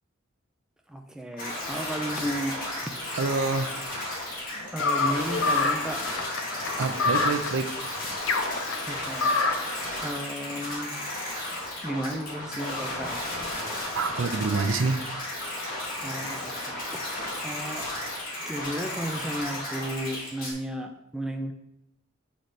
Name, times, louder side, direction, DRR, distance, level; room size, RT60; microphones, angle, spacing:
voice 1, 0.9-2.6 2.8-2.9 4.7-6.0 8.9-9.4 10.0-10.9 11.8-13.2 16.0-16.8 17.4-17.9 18.5-21.5, right 1 dB, 5° right, 3 dB, 0.5 m, -33 dB
sound 1, 1.4-20.5, left 1 dB, 45° left, 1.8 m, -34 dB
voice 2, 3.1-3.7 6.8-7.7 13.9-15.0, right 4 dB, 80° right, 8 dB, 0.5 m, -26 dB
sound 2, 4.8-9.8, left 3 dB, 80° left, 0.6 m, -27 dB
7.8 x 3.2 x 4.1 m, 0.84 s
head